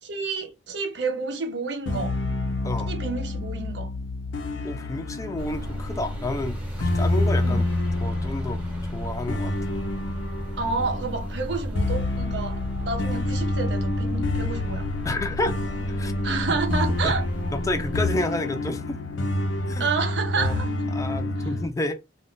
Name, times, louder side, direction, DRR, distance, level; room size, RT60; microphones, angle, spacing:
voice 1, 0.0-2.2 2.9-3.9 7.4-7.6 10.6-12.6 12.9-14.9 16.2-17.3 19.8-20.7 21.4-21.5, right 4 dB, 70° right, 0.7 m, -29 dB
sound 1, 1.9-21.7, left 2 dB, 85° left, 0.5 m, -28 dB
voice 2, 4.6-7.6 8.0-8.6 8.9-9.7 15.0-15.6 15.9-16.1 17.0-17.1 17.5-19.0 19.7-19.9 20.4-20.6 20.9-22.0, left 2 dB, 15° left, 0.4 m, -30 dB
sound 2, 5.4-18.1, equal, 10° right, 0.8 m, -35 dB
2.5 x 2.2 x 3.7 m
head